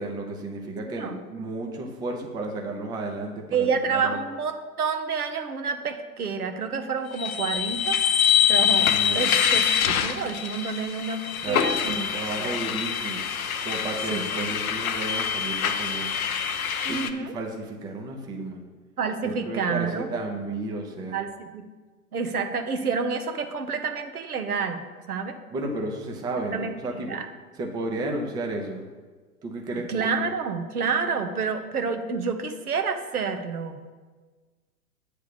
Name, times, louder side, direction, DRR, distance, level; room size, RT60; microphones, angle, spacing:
voice 1, 0.0-4.2 8.7-9.4 11.3-11.6 11.9-13.2 13.6-16.2 16.9-18.6 19.2-21.2 25.5-27.2 27.6-28.9 29.4-30.1, right 2 dB, 10° right, 2 dB, 0.5 m, -33 dB
voice 2, 3.5-8.0 8.5-12.1 12.4-12.5 14.1-14.2 16.8-17.3 19.0-20.1 21.1-21.6 22.1-25.4 26.5-26.8 27.0-27.3 29.9-33.8, right 5 dB, 80° right, 7 dB, 0.9 m, -29 dB
sound 1, 7.1-17.1, left 8 dB, 65° left, 0.7 m, -25 dB
8.2 x 3.4 x 6.6 m, 1.4 s
figure-of-eight pair, 105°, 44 cm